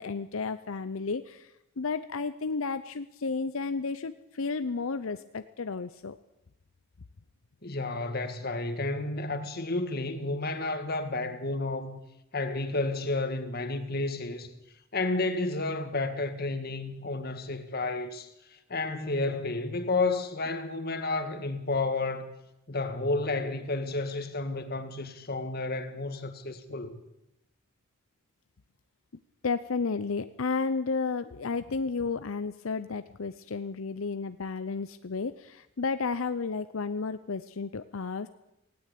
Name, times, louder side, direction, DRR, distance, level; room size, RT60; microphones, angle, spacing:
voice 1, 0.0-6.2 29.4-38.3, left 4 dB, 80° left, 0.7 m, -32 dB
voice 2, 7.6-12.0 12.3-14.5 14.9-22.3 22.7-27.0, left 2 dB, 50° left, 1.9 m, -31 dB
18.5 x 17.0 x 8.5 m
head